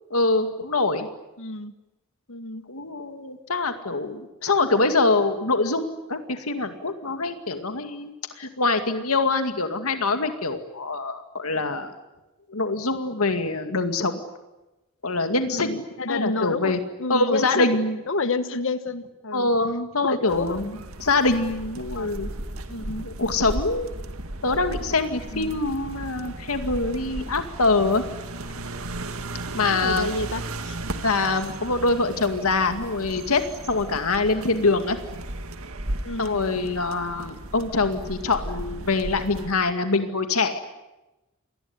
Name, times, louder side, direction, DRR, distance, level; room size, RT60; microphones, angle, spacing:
voice 1, 0.1-1.1 2.7-11.9 12.5-14.2 15.0-15.8 16.1-16.8 17.1-18.0 19.3-22.3 22.8-23.9 24.4-28.1 29.5-30.1 31.0-35.0 36.2-40.6, left 3 dB, 90° left, 7 dB, 2.2 m, -24 dB
voice 2, 1.4-1.7 2.3-2.6 15.5-16.7 17.0-17.7 18.1-19.5 20.0-20.6 21.9-22.1 22.7-23.1 25.3-25.6 29.7-30.8 36.0-36.4, left 3 dB, 65° left, 11 dB, 1.3 m, -29 dB
sound 1, 20.3-39.5, right 1 dB, 75° right, 2.1 m, -35 dB
28.5 x 21.0 x 9.7 m, 1.0 s
head